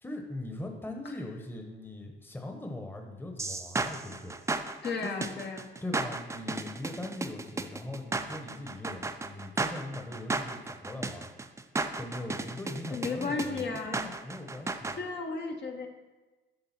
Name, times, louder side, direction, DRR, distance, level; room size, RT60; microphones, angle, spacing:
voice 1, 0.0-4.3 5.0-5.3 5.8-11.3 12.0-15.0, left 1 dB, 10° left, 3 dB, 0.9 m, -40 dB
sound 1, 3.4-15.0, right 3 dB, 15° right, 0.4 m, -34 dB
voice 2, 4.8-5.7 12.9-14.1 14.9-15.9, left 4 dB, 60° left, 3 dB, 1.0 m, -34 dB
6.8 x 3.8 x 5.9 m, 1.2 s
cardioid pair, 90°, 20 cm